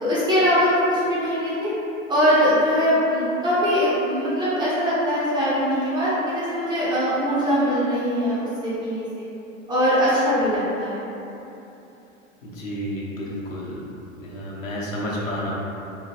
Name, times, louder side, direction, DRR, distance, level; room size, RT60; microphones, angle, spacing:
voice 1, 0.0-1.7 2.1-9.3 9.7-11.0, equal, 10° right, -10 dB, 0.4 m, -21 dB
voice 2, 12.4-13.9 14.2-15.6, equal, 75° left, -6 dB, 0.8 m, -30 dB
3.1 x 2.2 x 2.7 m, 2.9 s
figure-of-eight pair, 95°, 40 cm